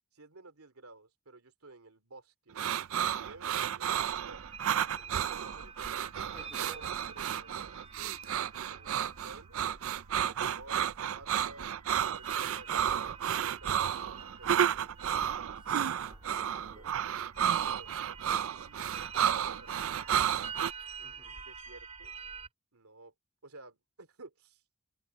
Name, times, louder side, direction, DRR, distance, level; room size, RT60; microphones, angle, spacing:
voice 1, 0.1-4.4 4.9-5.7 6.6-9.6 10.1-14.9 16.7-16.9 17.4-17.9 18.5-19.9 21.0-22.1 22.7-23.1 23.4-24.6, right 2 dB, 80° right, 2.6 m, -54 dB
sound 1, 2.6-20.7, right 9 dB, 65° right, 0.4 m, -32 dB
sound 2, 4.0-22.5, right 5 dB, 30° right, 5.2 m, -48 dB
voice 2, 6.2-6.8 10.1-10.4 15.6-17.0 21.0-21.4, equal, 5° right, 2.7 m, -58 dB
head